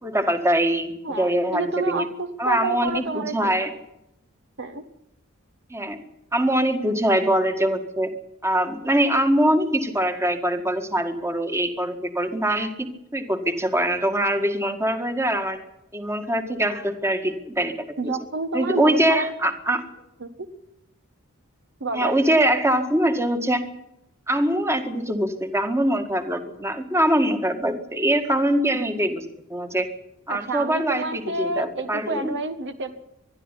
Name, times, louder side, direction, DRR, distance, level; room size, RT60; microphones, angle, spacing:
voice 1, 0.0-0.9 1.2-1.7 1.9-2.1 2.4-3.7 5.7-6.0 6.3-8.1 8.4-15.6 15.9-17.8 18.0-18.1 18.5-19.9 21.9-23.6 24.3-29.3 29.5-29.9 30.3-32.3, right 1 dB, 10° right, 7 dB, 1.8 m, -23 dB
voice 2, 1.0-3.7 4.6-4.8 18.0-19.3 20.2-20.5 21.8-22.2 30.3-33.0, right 3 dB, 55° right, 9 dB, 1.4 m, -29 dB
21.5 x 13.0 x 9.9 m, 0.85 s
head